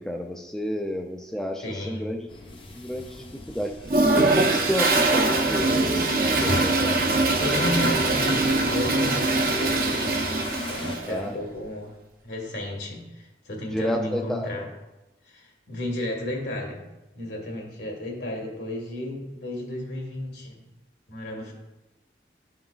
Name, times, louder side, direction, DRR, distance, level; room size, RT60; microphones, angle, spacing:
voice 1, 0.0-2.3 2.7-3.9 4.2-7.0 11.1-11.4 13.7-14.6, equal, 5° left, 1 dB, 0.3 m, -30 dB
voice 2, 1.6-2.1 7.4-10.2 10.6-12.0 12.2-14.7 15.3-16.8 17.1-20.6 21.1-21.5, left 1 dB, 75° left, 0 dB, 1.6 m, -32 dB
sound 1, 2.3-11.0, left 2 dB, 30° left, 0.7 m, -37 dB
Toilet flush, 3.9-11.1, right 2 dB, 55° right, 0.7 m, -23 dB
11.5 x 3.8 x 2.3 m, 1.0 s
head